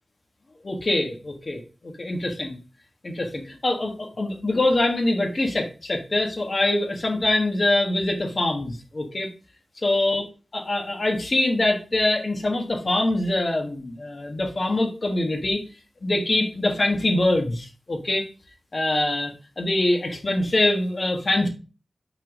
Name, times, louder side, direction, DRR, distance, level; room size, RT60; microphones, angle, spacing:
voice 1, 0.6-2.6 3.0-9.3 9.8-10.2 10.5-15.6 16.0-18.3 18.7-21.5, left 2 dB, 45° left, 2 dB, 1.5 m, -24 dB
5.7 x 4.6 x 6.2 m, 0.34 s
wide cardioid pair, 95°, 0 cm